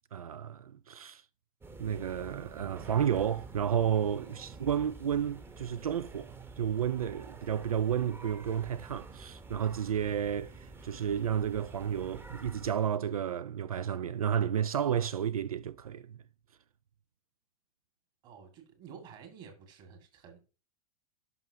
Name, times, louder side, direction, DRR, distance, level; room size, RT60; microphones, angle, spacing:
voice 1, 0.1-1.2 1.8-16.2, right 9 dB, 75° right, 0.4 m, -32 dB
sound 1, 1.6-12.7, right 3 dB, 10° right, 0.9 m, -49 dB
voice 2, 4.2-4.7 18.2-20.4, right 6 dB, 40° right, 2.1 m, -51 dB
11.0 x 5.6 x 2.8 m
figure-of-eight pair, 95°, 19 cm